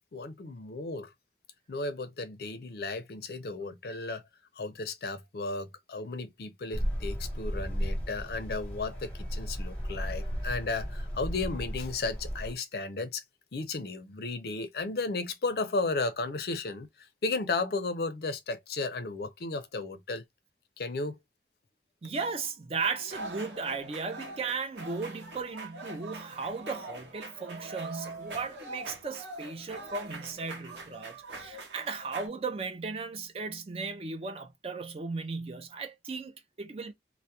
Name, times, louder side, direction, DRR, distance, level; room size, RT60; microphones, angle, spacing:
voice 1, 0.1-1.1 1.7-4.2 4.6-13.2 13.5-20.2 20.8-21.2, left 3 dB, 60° left, 0.5 m, -34 dB
sound 1, 6.7-12.5, equal, 10° left, 0.8 m, -34 dB
voice 2, 22.0-36.9, right 4 dB, 35° right, 0.4 m, -36 dB
sound 2, 22.8-32.3, right 2 dB, 80° right, 0.8 m, -43 dB
2.3 x 2.1 x 2.7 m
head